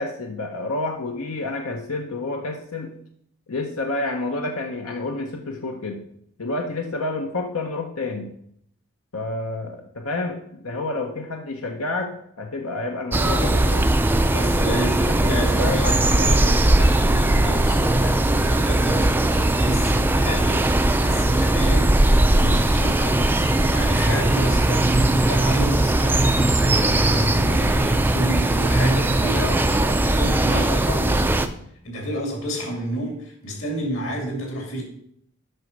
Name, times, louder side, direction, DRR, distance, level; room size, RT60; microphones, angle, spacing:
voice 1, 0.0-3.0 3.5-6.0 6.4-8.3 9.1-13.9 14.6-15.9, left 2 dB, 80° left, 3 dB, 0.9 m, -29 dB
sound 1, 13.1-31.5, right 1 dB, 10° right, 0.3 m, -19 dB
voice 2, 14.2-31.6 31.8-34.8, equal, 65° left, 1 dB, 2.6 m, -31 dB
7.9 x 6.0 x 5.3 m, 0.69 s
head